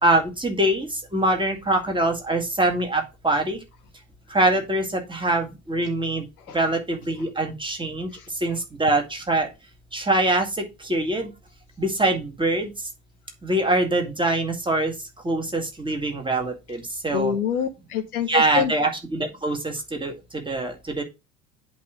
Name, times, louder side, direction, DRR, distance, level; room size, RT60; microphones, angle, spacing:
voice 1, 0.0-3.6 4.3-6.2 6.5-8.1 8.4-9.5 9.9-11.3 11.8-12.7 13.4-14.9 15.2-17.3 18.3-21.0, right 2 dB, 10° right, 4 dB, 2.0 m, -24 dB
voice 2, 17.1-18.7, left 8 dB, 80° left, 7 dB, 0.7 m, -26 dB
8.2 x 3.2 x 6.3 m, 0.26 s
figure-of-eight pair, 60°, 44 cm